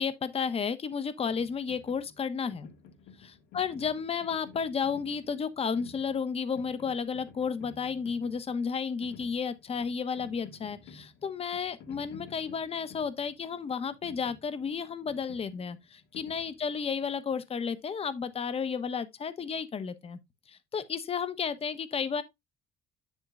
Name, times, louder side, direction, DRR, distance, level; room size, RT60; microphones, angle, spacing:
voice 1, 0.0-2.7 3.2-20.2 20.5-22.2, left 6 dB, 35° left, 1.0 m, -32 dB
sound 1, 1.3-17.0, left 5 dB, 90° left, 1.9 m, -53 dB
7.8 x 7.3 x 2.5 m
cardioid pair, 110°, 17 cm